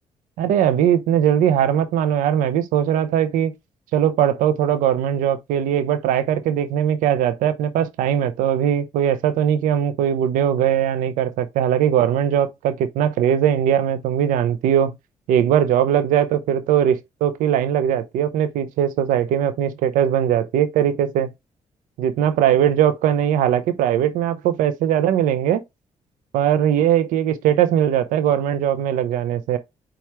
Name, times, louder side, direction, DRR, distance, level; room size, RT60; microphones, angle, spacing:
voice 1, 0.4-3.5 3.9-14.9 15.3-21.3 22.0-25.6 26.3-29.6, right 10 dB, 90° right, 0.4 m, -20 dB
4.2 x 2.3 x 4.6 m
cardioid pair, 70°, 13 cm